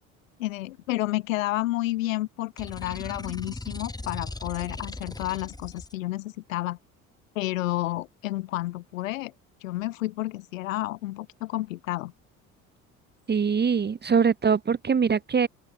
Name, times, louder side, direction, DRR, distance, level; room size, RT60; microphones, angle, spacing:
voice 1, 0.4-6.8 7.3-9.3 9.6-12.1, left 17 dB, 70° left, 2.8 m, -30 dB
sound 1, 2.6-5.9, left 2 dB, 10° left, 5.7 m, -38 dB
voice 2, 13.3-15.5, right 6 dB, 25° right, 1.9 m, -23 dB
open air
figure-of-eight pair, 55°, 41 cm